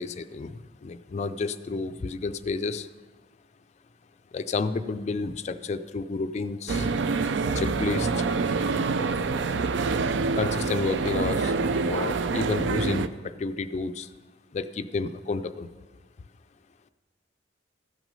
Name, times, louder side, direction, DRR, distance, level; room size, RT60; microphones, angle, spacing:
voice 1, 0.0-2.9 4.3-6.9 7.5-8.2 10.4-11.5 11.9-14.1 14.5-15.7, left 4 dB, 40° left, 11 dB, 0.3 m, -31 dB
sound 1, 6.7-13.1, right 4 dB, 75° right, 0.4 m, -26 dB
14.0 x 6.2 x 5.3 m, 1.4 s
head